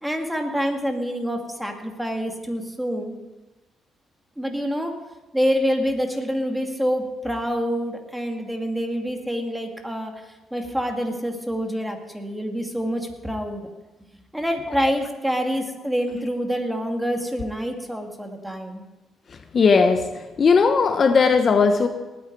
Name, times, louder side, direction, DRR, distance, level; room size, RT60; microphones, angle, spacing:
voice 1, 0.0-3.2 4.4-5.0 5.3-13.7 14.3-18.8, equal, 5° right, 3 dB, 2.4 m, -26 dB
voice 2, 19.5-21.9, left 5 dB, 45° left, 8 dB, 1.0 m, -18 dB
19.0 x 9.5 x 4.8 m, 1.1 s
cardioid pair, 85°, 0 cm